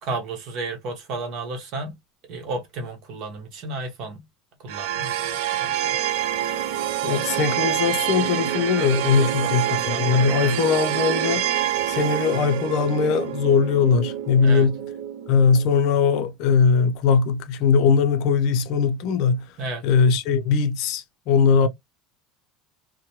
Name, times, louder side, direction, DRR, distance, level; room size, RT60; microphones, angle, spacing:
voice 1, 0.0-1.9 2.3-4.2 4.6-6.0 6.3-6.8 7.1-7.4 9.2-10.6 14.4-14.7 19.6-19.8, right 3 dB, 45° right, 0.9 m, -33 dB
sound 1, 4.7-15.8, right 11 dB, 75° right, 0.4 m, -26 dB
voice 2, 7.0-11.5 11.9-14.8 15.3-19.5 19.8-21.7, left 6 dB, 50° left, 0.5 m, -20 dB
3.0 x 2.1 x 2.8 m
cardioid pair, 175°, 0 cm